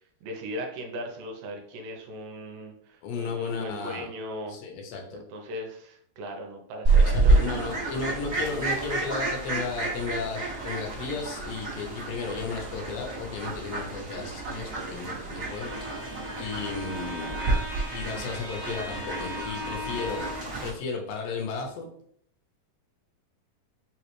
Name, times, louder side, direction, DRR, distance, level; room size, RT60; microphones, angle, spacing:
voice 1, 0.2-4.6 5.1-7.6 14.8-15.4, equal, 80° right, 3 dB, 2.3 m, -38 dB
voice 2, 3.0-4.1 4.5-5.2 7.0-17.4 17.9-20.3 20.6-21.9, left 4 dB, 80° left, 2 dB, 2.6 m, -34 dB
Fowl, 6.8-20.7, right 3 dB, 40° right, 1.2 m, -29 dB
Bowed string instrument, 15.2-20.6, left 2 dB, 25° left, 0.9 m, -38 dB
5.6 x 3.1 x 3.0 m, 0.64 s
omnidirectional pair, 4.1 m